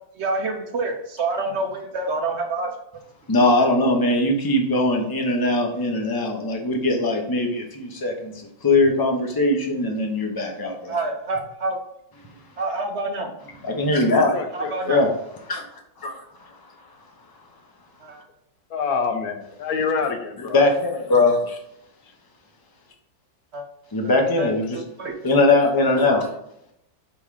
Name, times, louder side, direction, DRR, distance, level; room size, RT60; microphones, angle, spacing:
voice 1, 0.1-2.7 10.9-11.8 12.6-13.3 14.5-15.0 18.0-18.2 23.5-23.6 24.4-24.5 24.7-25.2, right 2 dB, 60° right, 3 dB, 0.7 m, -27 dB
voice 2, 3.3-8.3 8.6-10.9 13.6-14.4 14.9-15.1 15.5-15.6 16.0-16.2 20.4-21.6 23.9-24.8 25.2-26.3, left 2 dB, 30° left, 1 dB, 0.4 m, -20 dB
voice 3, 14.3-15.1 18.7-20.6, left 5 dB, 60° left, 5 dB, 1.1 m, -27 dB
5.4 x 3.8 x 4.8 m, 0.77 s
omnidirectional pair, 2.1 m